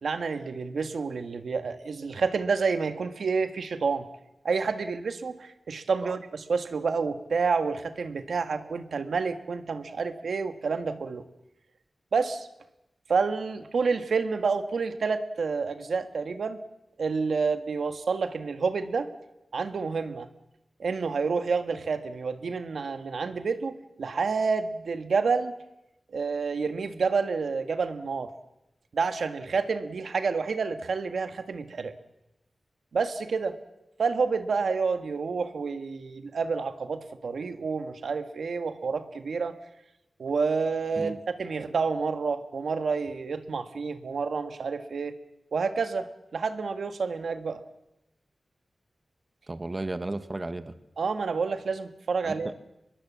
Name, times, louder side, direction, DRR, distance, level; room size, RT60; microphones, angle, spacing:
voice 1, 0.0-4.1 4.4-11.2 12.1-12.5 13.1-16.6 17.0-19.1 19.5-20.3 20.8-25.5 26.1-28.3 28.9-31.9 32.9-33.6 34.0-39.5 40.2-45.1 45.5-47.6 51.0-52.5, right 5 dB, 90° right, 8 dB, 1.7 m, -29 dB
voice 2, 49.5-50.7 52.2-52.5, right 2 dB, 30° right, 11 dB, 1.2 m, -34 dB
24.5 x 22.0 x 7.5 m, 0.90 s
wide cardioid pair, 100°, 0 cm